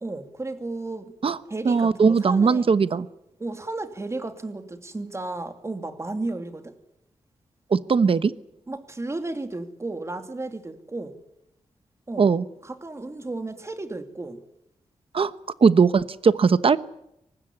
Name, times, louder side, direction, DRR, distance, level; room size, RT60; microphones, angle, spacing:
voice 1, 0.0-1.1 1.5-2.7 3.4-6.8 8.7-11.2 12.1-12.3 12.6-14.4, right 2 dB, 25° right, 8 dB, 2.6 m, -33 dB
voice 2, 1.6-3.1 7.7-8.3 12.2-12.4 15.1-15.3 15.6-16.8, right 5 dB, 50° right, 14 dB, 1.1 m, -19 dB
24.0 x 20.0 x 9.9 m, 0.81 s
wide cardioid pair, 130°, 12 cm